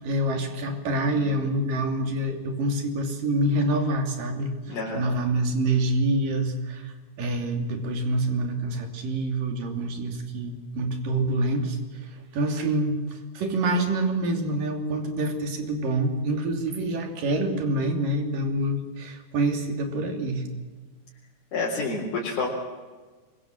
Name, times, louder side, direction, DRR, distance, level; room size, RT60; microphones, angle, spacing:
voice 1, 0.0-20.4, right 1 dB, 90° right, 5 dB, 4.6 m, -26 dB
voice 2, 4.7-5.0 21.5-22.5, left 3 dB, 70° left, -4 dB, 5.3 m, -28 dB
25.5 x 23.5 x 7.8 m, 1.4 s
omnidirectional pair, 3.7 m